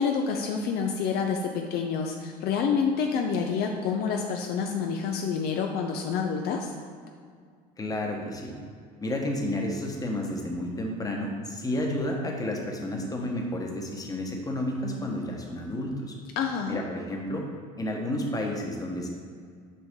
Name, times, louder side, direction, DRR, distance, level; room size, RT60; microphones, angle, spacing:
voice 1, 0.0-6.7 16.4-16.8, left 6 dB, 60° left, 3 dB, 0.6 m, -28 dB
voice 2, 7.8-8.5 9.0-16.1 16.7-17.4 17.8-19.1, left 1 dB, 20° left, 0 dB, 1.2 m, -31 dB
6.8 x 4.7 x 3.7 m, 2.1 s
supercardioid pair, 90°, 19 cm